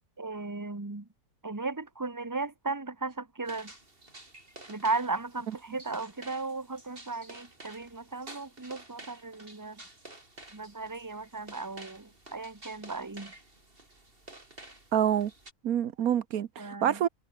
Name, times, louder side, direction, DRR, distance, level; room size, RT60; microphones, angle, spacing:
voice 1, 0.2-1.1 1.4-3.7 4.7-9.8 10.5-13.3 16.6-17.1, right 3 dB, 15° right, 1.6 m, -36 dB
sound 1, 3.5-15.5, right 2 dB, 40° right, 4.6 m, -51 dB
voice 2, 14.9-15.3 15.6-17.1, right 9 dB, 80° right, 1.4 m, -27 dB
omnidirectional pair, 1.5 m